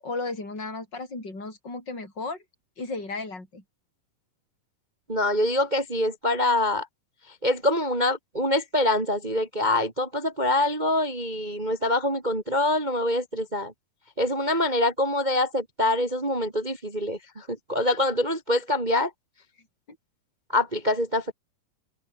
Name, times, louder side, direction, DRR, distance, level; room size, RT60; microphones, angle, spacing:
voice 1, 0.0-2.4 2.8-3.6, left 3 dB, 30° left, 8.7 m, -34 dB
voice 2, 5.1-6.9 7.4-13.7 14.2-19.1 20.5-21.3, left 1 dB, 25° right, 1.0 m, -25 dB
omnidirectional pair, 3.9 m